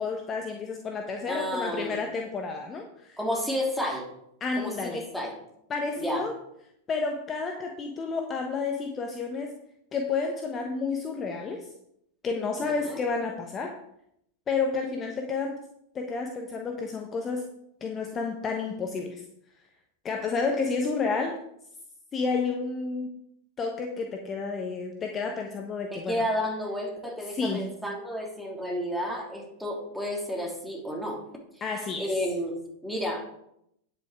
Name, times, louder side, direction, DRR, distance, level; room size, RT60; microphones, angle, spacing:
voice 1, 0.0-3.2 4.4-5.0 5.7-6.3 6.9-9.5 9.9-11.7 12.2-13.8 14.5-15.6 15.9-17.4 17.8-19.2 20.0-21.4 22.1-23.1 23.6-26.2 27.3-27.7 31.6-32.1, left 4 dB, 25° left, 3 dB, 1.2 m, -30 dB
voice 2, 1.3-2.0 3.2-4.1 4.6-5.4 6.0-6.3 12.8-13.0 25.9-31.4 32.0-32.5 32.8-33.2, equal, ahead, -1 dB, 2.9 m, -31 dB
9.6 x 8.1 x 4.7 m, 0.76 s
figure-of-eight pair, 90°, 0 cm